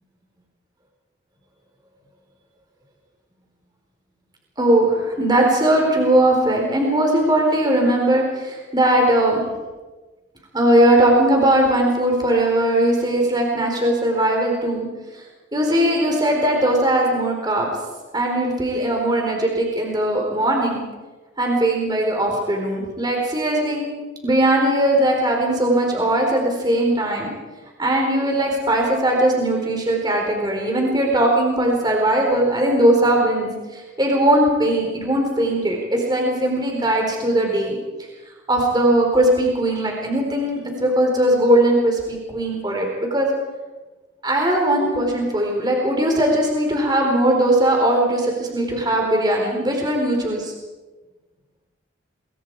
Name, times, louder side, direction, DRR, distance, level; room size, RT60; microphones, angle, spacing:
voice 1, 4.6-9.4 10.5-14.9 15.5-17.7 18.1-20.8 21.4-23.8 24.2-27.3 27.8-37.8 38.5-43.3 44.2-50.5, right 1 dB, 20° right, 1 dB, 4.3 m, -19 dB
27.5 x 23.0 x 4.9 m, 1.2 s
head